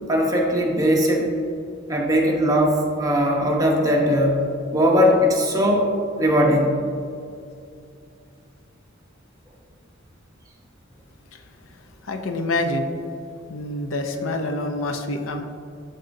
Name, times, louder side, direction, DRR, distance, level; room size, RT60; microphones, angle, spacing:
voice 1, 0.1-1.3 1.9-5.9 6.2-6.8, equal, 20° right, -1 dB, 0.9 m, -19 dB
voice 2, 12.0-12.9 13.5-15.4, left 2 dB, 85° left, 5 dB, 0.6 m, -26 dB
11.5 x 4.0 x 2.6 m, 2.5 s
head